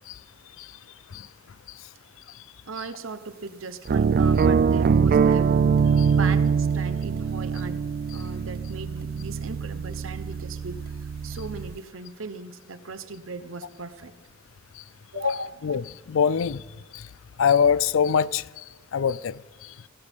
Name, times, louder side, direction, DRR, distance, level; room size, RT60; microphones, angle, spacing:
voice 1, 2.7-5.6 5.8-10.8 11.2-14.1 15.1-15.8, right 4 dB, 75° right, 0.9 m, -38 dB
sound 1, 3.9-11.8, right 6 dB, 45° right, 0.3 m, -23 dB
voice 2, 15.1-16.6 16.9-17.1 17.4-18.6 18.9-19.7, left 7 dB, 70° left, 0.4 m, -24 dB
17.5 x 15.0 x 3.6 m
head